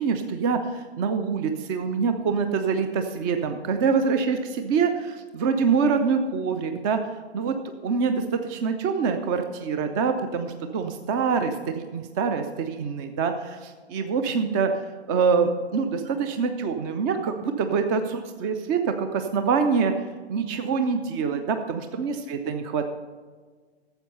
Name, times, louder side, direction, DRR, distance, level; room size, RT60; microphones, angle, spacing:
voice 1, 0.0-7.0 7.3-7.6 7.8-14.8 15.1-19.9 20.3-22.9, right 5 dB, 20° right, 7 dB, 0.5 m, -25 dB
12.5 x 7.6 x 5.4 m, 1.5 s
figure-of-eight pair, 125°, 32 cm